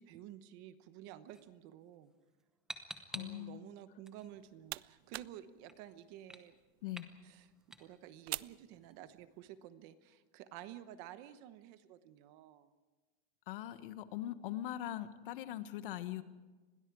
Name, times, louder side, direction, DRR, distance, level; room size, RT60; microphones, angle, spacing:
voice 1, 0.0-2.1 3.1-6.6 7.2-7.5 7.8-12.7, right 12 dB, 35° right, 12 dB, 1.0 m, -52 dB
sound 1, 1.3-11.2, right 1 dB, ahead, 0.9 m, -55 dB
voice 2, 3.1-3.6 6.8-7.1 13.5-16.2, left 13 dB, 60° left, 11 dB, 1.5 m, -41 dB
sound 2, 4.2-9.5, right 17 dB, 85° right, 0.6 m, -49 dB
30.0 x 22.0 x 4.8 m, 1.2 s
supercardioid pair, 175°, 31 cm